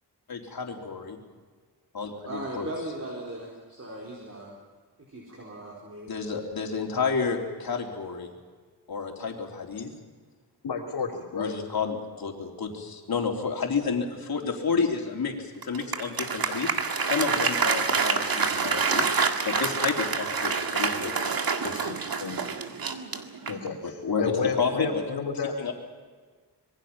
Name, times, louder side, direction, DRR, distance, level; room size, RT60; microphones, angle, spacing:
voice 1, 0.3-1.2 1.9-2.7 6.1-8.3 8.9-9.9 11.3-16.7 17.0-19.1 19.4-21.3 21.6-21.9 23.8-25.1 25.6-25.7, left 5 dB, 60° left, 1 dB, 3.8 m, -30 dB
voice 2, 2.2-4.5 5.1-6.1, right 1 dB, 40° right, -3 dB, 4.5 m, -38 dB
voice 3, 10.6-11.5 22.2-22.4 23.5-25.7, left 5 dB, 85° left, -6 dB, 3.4 m, -32 dB
Applause, 15.6-23.8, right 5 dB, 60° right, 2.0 m, -27 dB
26.0 x 22.5 x 5.8 m, 1.5 s
wide cardioid pair, 135°, 40 cm